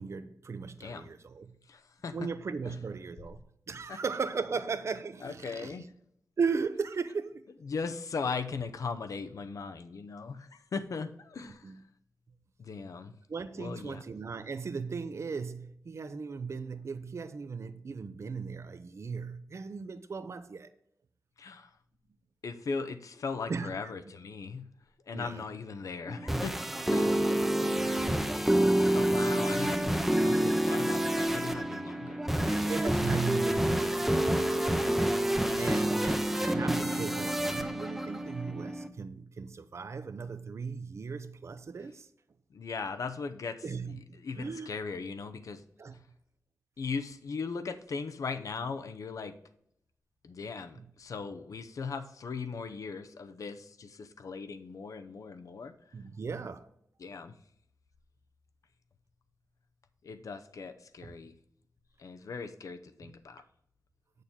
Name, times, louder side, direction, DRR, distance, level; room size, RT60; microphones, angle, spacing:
voice 1, 0.0-1.5 2.1-5.9 6.4-7.4 11.4-11.8 13.3-20.7 23.5-23.8 25.1-25.5 26.9-27.0 32.4-34.0 35.6-42.1 43.6-44.7 45.8-45.9 50.8-50.9 55.9-56.7 61.0-61.2, right 5 dB, 50° right, 0.6 m, -37 dB
voice 2, 0.8-1.1 1.7-2.2 2.7-2.8 3.9-4.0 5.2-5.8 7.6-11.7 12.6-13.1 13.6-14.0 21.4-21.7 22.4-24.6 25.1-26.6 26.9-27.1 28.9-32.2 35.4-35.8 42.5-45.6 46.8-49.3 50.2-55.7 57.0-57.3 60.0-61.3 62.0-63.4, left 5 dB, 70° left, 0.7 m, -38 dB
sound 1, 26.1-38.9, right 1 dB, 5° right, 0.7 m, -28 dB
8.2 x 6.6 x 3.7 m
wide cardioid pair, 105°, 6 cm